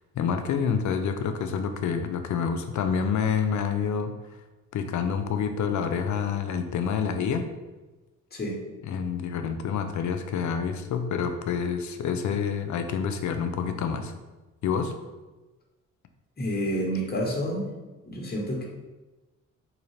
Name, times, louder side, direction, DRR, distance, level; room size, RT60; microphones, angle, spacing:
voice 1, 0.1-4.1 4.7-7.5 8.8-14.1 14.6-14.9, left 6 dB, 60° left, 7 dB, 0.5 m, -28 dB
voice 2, 16.4-17.7 18.1-18.6, equal, 30° left, -2 dB, 1.1 m, -29 dB
3.8 x 2.8 x 3.2 m, 1.2 s
supercardioid pair, 65°, 33 cm